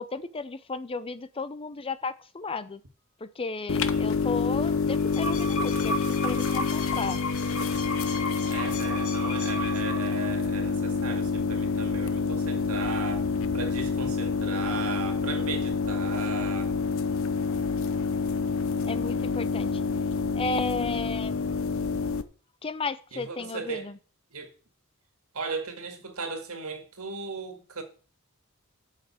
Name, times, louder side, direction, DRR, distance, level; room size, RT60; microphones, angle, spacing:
voice 1, 0.0-2.8 3.2-6.0 6.2-7.2 18.8-19.8 20.3-21.3 22.6-24.0, left 4 dB, 25° left, 0.5 m, -34 dB
sound 1, 3.7-22.2, left 4 dB, 65° left, 0.7 m, -27 dB
sound 2, 4.9-10.3, left 1 dB, 90° left, 2.0 m, -34 dB
voice 2, 8.5-16.8 23.1-23.9 24.3-24.5 25.3-27.8, right 4 dB, 90° right, 2.0 m, -37 dB
7.9 x 5.7 x 7.2 m
head